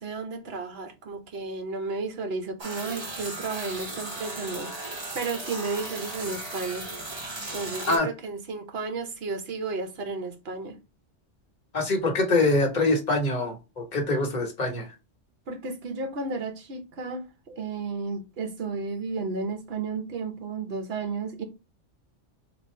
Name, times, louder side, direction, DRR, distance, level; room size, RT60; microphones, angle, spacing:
voice 1, 0.0-6.9 7.5-10.8 15.5-21.4, right 4 dB, 60° right, 1.0 m, -33 dB
sound 1, 2.6-8.0, right 2 dB, 25° right, 0.8 m, -36 dB
voice 2, 11.7-14.9, left 2 dB, 40° left, 1.2 m, -24 dB
2.9 x 2.5 x 4.3 m
omnidirectional pair, 1.3 m